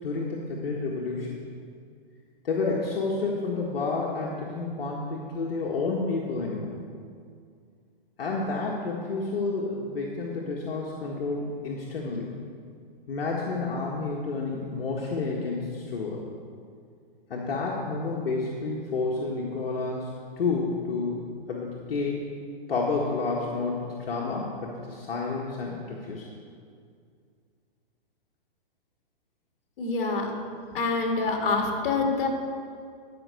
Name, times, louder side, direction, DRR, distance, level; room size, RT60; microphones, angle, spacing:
voice 1, 0.0-1.4 2.4-6.7 8.2-12.3 13.1-16.2 17.3-20.1 20.4-22.2 22.7-26.2, left 3 dB, 80° left, -3 dB, 1.7 m, -30 dB
voice 2, 29.8-30.3 30.7-32.3, left 3 dB, 65° left, 2 dB, 2.4 m, -26 dB
11.0 x 5.9 x 7.8 m, 2.2 s
hypercardioid pair, 140°, 29 cm